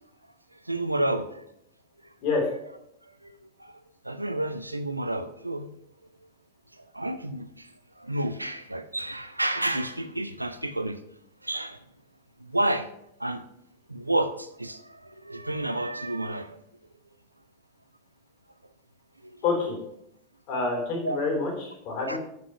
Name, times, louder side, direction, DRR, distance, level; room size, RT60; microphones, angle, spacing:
voice 1, 0.7-1.4 3.2-3.3 3.6-3.7 4.1-5.7 6.9-7.5 8.0-11.0 11.4-11.8 12.5-12.9 13.2-13.4 13.9-14.8 15.2-16.5 21.0-21.2 22.1-22.2, right 1 dB, 85° right, 10 dB, 0.6 m, -29 dB
voice 2, 19.4-19.8 20.5-22.2, left 4 dB, 45° left, 0 dB, 3.5 m, -27 dB
7.1 x 6.2 x 5.7 m, 0.77 s
figure-of-eight pair, 90°, 0 cm